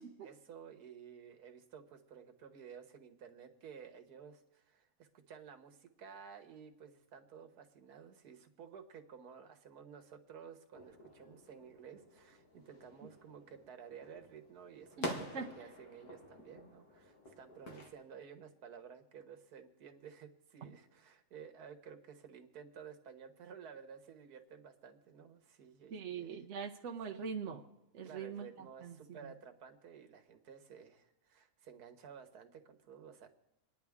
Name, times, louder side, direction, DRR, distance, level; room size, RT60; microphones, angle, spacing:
voice 1, 0.2-26.4 28.0-33.3, right 7 dB, 90° right, 6 dB, 1.7 m, -54 dB
sound 1, 10.8-17.9, left 1 dB, 80° left, 2.1 m, -48 dB
voice 2, 15.0-15.5 25.9-27.6 27.9-29.3, right 6 dB, 55° right, 1 dB, 1.0 m, -43 dB
28.0 x 9.9 x 3.6 m, 0.96 s
omnidirectional pair, 1.6 m